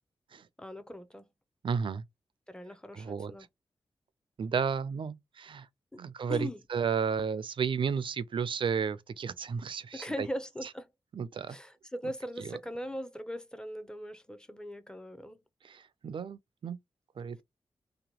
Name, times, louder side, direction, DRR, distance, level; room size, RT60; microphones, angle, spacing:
voice 1, 0.6-1.3 2.5-3.5 5.9-6.0 6.3-6.6 9.9-10.9 11.5-15.4, equal, 10° left, 0.6 m, -40 dB
voice 2, 1.6-2.0 2.9-3.3 4.4-5.7 6.0-10.3 11.1-11.6 15.6-16.8 17.2-17.4, right 6 dB, 60° right, 0.4 m, -33 dB
2.9 x 2.2 x 2.9 m
cardioid pair, 55°, 10 cm